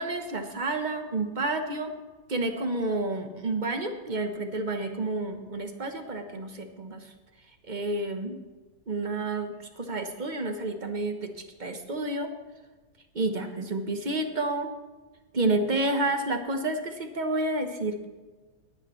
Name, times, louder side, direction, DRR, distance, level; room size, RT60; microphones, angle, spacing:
voice 1, 0.0-1.9 2.3-7.1 7.7-8.4 8.9-11.3 11.6-12.3 13.1-14.7 15.3-18.0, right 2 dB, 35° right, 6 dB, 1.1 m, -30 dB
20.5 x 9.0 x 3.1 m, 1.3 s
omnidirectional pair, 1.7 m